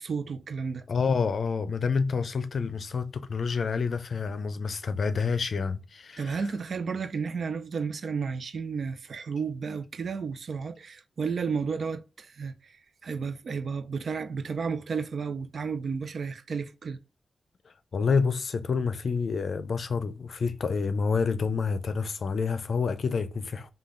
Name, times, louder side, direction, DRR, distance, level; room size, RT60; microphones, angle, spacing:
voice 1, 0.0-0.8 6.2-12.7 13.0-17.0, right 5 dB, 65° right, 0.5 m, -32 dB
voice 2, 0.9-6.4 17.9-23.7, left 5 dB, 65° left, 0.5 m, -28 dB
5.3 x 2.4 x 3.7 m
wide cardioid pair, 90°, 0 cm